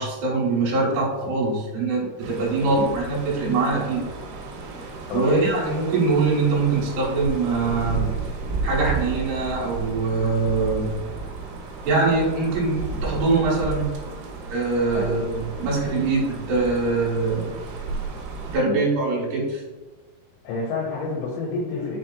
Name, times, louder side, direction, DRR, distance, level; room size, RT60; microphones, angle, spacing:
voice 1, 0.0-4.0 5.1-8.1 8.6-10.9 11.8-13.9 14.5-17.4 18.5-19.6, right 3 dB, 75° right, -5 dB, 3.1 m, -23 dB
sound 1, 2.2-18.6, right 4 dB, 90° right, 2.9 m, -33 dB
voice 2, 20.4-22.0, left 4 dB, 85° left, -4 dB, 3.0 m, -28 dB
6.7 x 2.8 x 2.3 m, 1.2 s
omnidirectional pair, 5.0 m